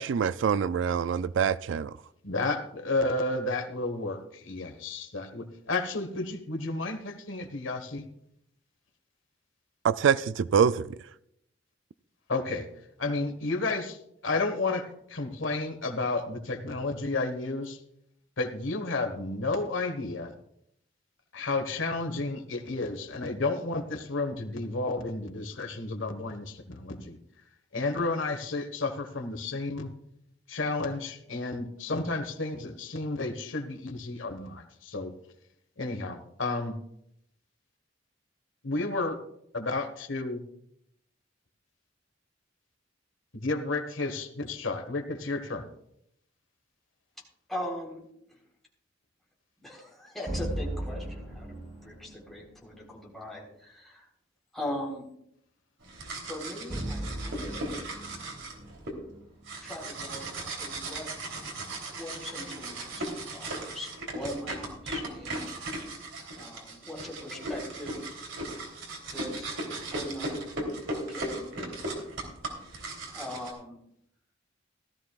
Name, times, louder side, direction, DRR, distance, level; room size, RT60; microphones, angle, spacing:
voice 1, 0.0-1.9 9.8-10.8, right 7 dB, 70° right, 0.3 m, -25 dB
voice 2, 2.2-8.0 12.3-12.7 13.0-14.0 14.2-17.8 18.4-20.3 21.3-27.2 27.7-29.9 30.5-35.1 35.8-36.8 38.6-39.2 39.5-40.4 43.3-45.7, left 3 dB, 90° left, 1.5 m, -31 dB
voice 3, 47.5-48.4 49.6-54.1 54.5-55.1 56.3-57.6 59.6-61.1 61.9-65.6 66.4-68.1 69.1-69.5 69.9-70.4 71.1-71.6 73.1-73.8, left 1 dB, ahead, 3.8 m, -40 dB
sound 1, 50.3-52.4 56.7-59.9, right 1 dB, 30° right, 4.8 m, -37 dB
sound 2, 55.8-58.9 59.5-73.5, right 2 dB, 85° right, 3.2 m, -37 dB
17.0 x 13.0 x 2.4 m
head